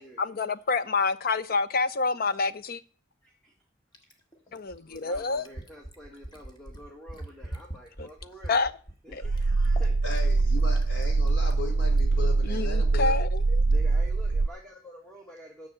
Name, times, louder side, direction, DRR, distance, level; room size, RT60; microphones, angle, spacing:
voice 1, 0.0-2.8 4.5-5.4 8.5-8.7 9.1-9.2 12.4-13.6, left 4 dB, 50° left, 0.7 m, -28 dB
voice 2, 3.2-3.5 4.9-8.7 9.0-10.0 13.6-15.7, equal, 5° left, 1.6 m, -48 dB
Fill (with liquid), 3.9-12.0 13.4-13.5, right 1 dB, 25° left, 1.6 m, -42 dB
sound 1, 9.2-14.5, right 3 dB, 85° right, 0.5 m, -23 dB
voice 3, 10.0-13.2, left 3 dB, 70° left, 4.0 m, -37 dB
10.0 x 6.5 x 8.0 m
head